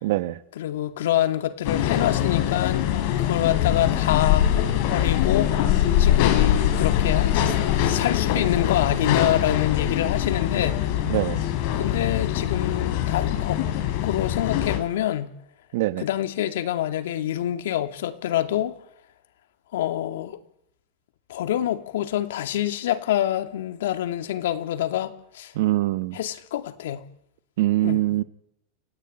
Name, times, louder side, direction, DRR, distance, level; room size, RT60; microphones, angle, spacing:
voice 1, 0.0-0.4 11.1-11.4 15.7-16.0 25.5-26.2 27.6-28.2, right 16 dB, 65° right, 1.3 m, -23 dB
voice 2, 0.6-2.9 3.2-10.8 11.8-13.6 14.0-15.3 16.0-18.8 19.7-20.4 21.3-25.5 26.1-27.0 27.8-28.0, left 12 dB, 90° left, 2.6 m, -26 dB
sound 1, 1.6-14.8, left 11 dB, 50° left, 5.6 m, -23 dB
29.0 x 18.5 x 9.0 m
supercardioid pair, 165°, 0 cm